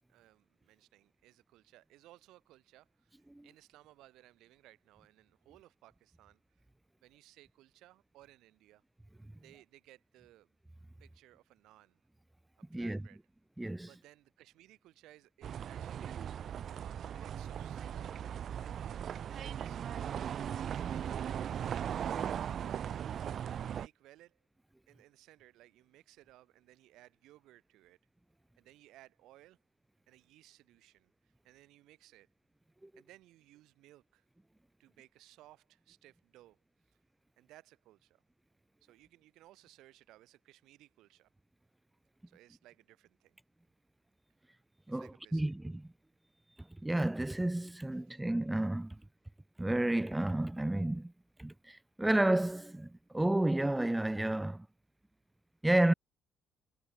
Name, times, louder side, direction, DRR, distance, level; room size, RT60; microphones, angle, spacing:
voice 1, 0.1-6.6 7.0-8.8 9.4-10.5 11.0-12.0 12.6-13.2 13.8-16.2 16.6-18.3 18.7-20.1 20.7-21.7 22.2-24.4 24.9-28.0 28.6-29.6 30.1-32.3 33.0-34.2 34.8-36.6 37.4-38.2 38.8-41.3 42.3-43.4 44.9-45.4 47.9-48.2, right 16 dB, 75° right, 7.9 m, -61 dB
voice 2, 13.6-13.9 22.2-22.3 32.8-32.9 44.9-45.8 46.8-49.0 49.6-51.1 51.4-54.7 55.6-55.9, right 1 dB, 10° right, 0.3 m, -31 dB
sound 1, 15.4-23.9, right 9 dB, 50° right, 0.8 m, -38 dB
cardioid pair, 120°, 0 cm